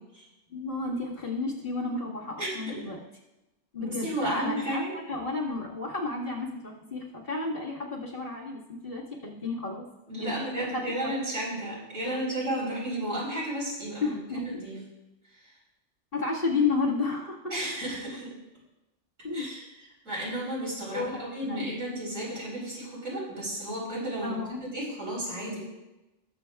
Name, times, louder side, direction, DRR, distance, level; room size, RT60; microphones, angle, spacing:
voice 1, 0.5-3.0 3.7-9.8 10.2-10.9 12.1-12.2 14.0-14.6 16.1-17.5 19.2-19.5 20.9-21.7 24.2-24.6, left 3 dB, 45° left, -5 dB, 2.0 m, -32 dB
voice 2, 2.4-2.8 3.8-4.9 10.1-14.8 17.5-18.3 19.3-19.6 20.0-24.4 24.7-25.6, right 1 dB, 75° right, -6 dB, 4.1 m, -33 dB
19.5 x 7.3 x 2.3 m, 1.0 s
omnidirectional pair, 1.3 m